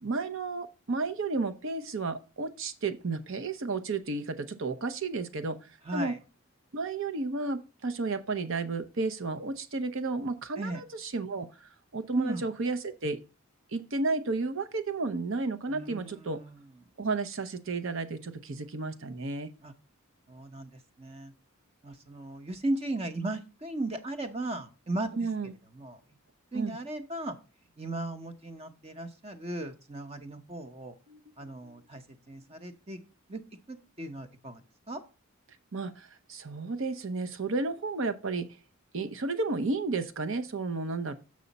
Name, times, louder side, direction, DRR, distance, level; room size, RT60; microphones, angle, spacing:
voice 1, 0.0-5.6 5.9-6.1 6.7-11.5 11.9-13.2 13.7-16.4 17.0-19.5 25.1-25.5 26.5-26.8 31.1-31.7 35.7-38.5 38.9-41.1, right 3 dB, 60° right, 0.7 m, -32 dB
voice 2, 5.8-6.2 10.6-10.8 12.1-12.4 15.7-16.6 19.6-19.7 20.3-20.7 21.0-21.3 21.8-25.1 25.7-26.0 26.5-27.4 27.8-30.9 31.4-33.0 33.3-33.4 33.7-34.6 34.9-35.0, right 2 dB, 30° right, 0.8 m, -36 dB
6.8 x 6.3 x 4.0 m
head